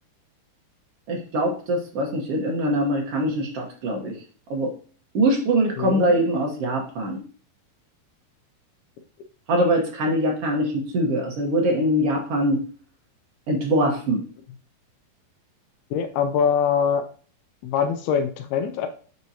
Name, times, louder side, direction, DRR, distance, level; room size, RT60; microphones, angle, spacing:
voice 1, 1.1-4.1 4.5-4.7 5.1-7.2 9.5-12.6 13.5-14.2, right 1 dB, 90° right, 0 dB, 1.3 m, -23 dB
voice 2, 5.8-6.3 15.9-17.1 17.6-18.9, left 7 dB, 80° left, 7 dB, 2.5 m, -23 dB
9.0 x 4.7 x 2.7 m, 0.41 s
omnidirectional pair, 4.6 m